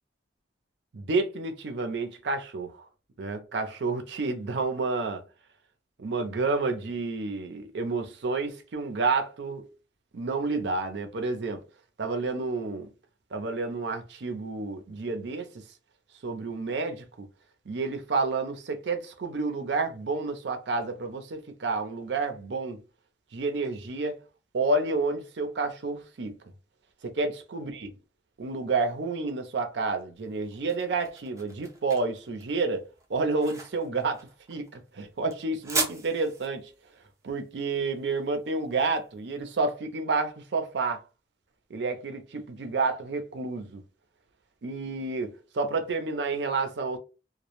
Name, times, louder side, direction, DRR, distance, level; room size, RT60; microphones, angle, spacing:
voice 1, 0.9-2.9 3.2-5.2 6.0-9.7 10.1-11.6 12.0-12.9 13.3-15.6 16.2-17.3 17.7-22.8 23.3-24.2 24.5-26.4 27.0-27.9 28.4-32.8 33.1-36.7 37.2-41.0 41.7-43.8 44.6-47.0, right 3 dB, 80° right, 0.5 m, -30 dB
sound 1, 30.2-39.2, right 3 dB, 15° right, 0.4 m, -38 dB
2.1 x 2.1 x 2.9 m
head